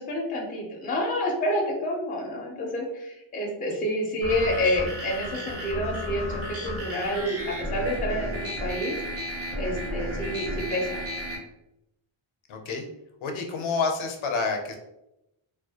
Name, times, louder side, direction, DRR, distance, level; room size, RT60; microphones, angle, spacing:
voice 1, 0.0-8.9 9.6-11.0, left 1 dB, 20° left, -2 dB, 0.4 m, -28 dB
sound 1, 4.2-11.4, equal, 30° right, 0.6 m, -33 dB
voice 2, 12.5-12.9 13.2-14.8, left 4 dB, 70° left, 4 dB, 0.5 m, -28 dB
2.3 x 2.1 x 2.7 m, 0.87 s
wide cardioid pair, 180°, 50 cm